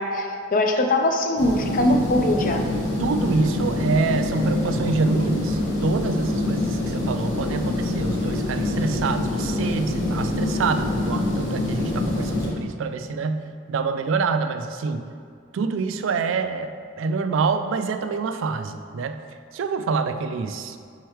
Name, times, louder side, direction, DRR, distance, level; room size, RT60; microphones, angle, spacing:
voice 1, 0.0-2.6, left 1 dB, 40° left, 4 dB, 0.5 m, -21 dB
sound 1, 1.4-12.5, left 2 dB, 60° left, 1.4 m, -25 dB
voice 2, 3.0-15.1 15.5-19.2 19.5-20.8, right 4 dB, 75° right, 9 dB, 0.4 m, -26 dB
4.6 x 4.5 x 4.6 m, 2.2 s
head